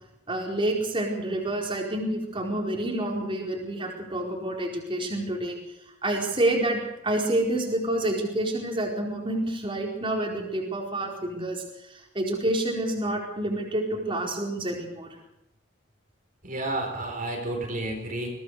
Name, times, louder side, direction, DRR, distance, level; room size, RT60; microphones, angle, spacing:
voice 1, 0.3-5.6 6.0-6.8 7.0-15.1, right 1 dB, 25° right, -1 dB, 4.6 m, -28 dB
voice 2, 16.4-18.3, right 1 dB, 45° right, 1 dB, 4.4 m, -31 dB
23.0 x 18.0 x 6.7 m, 0.85 s
head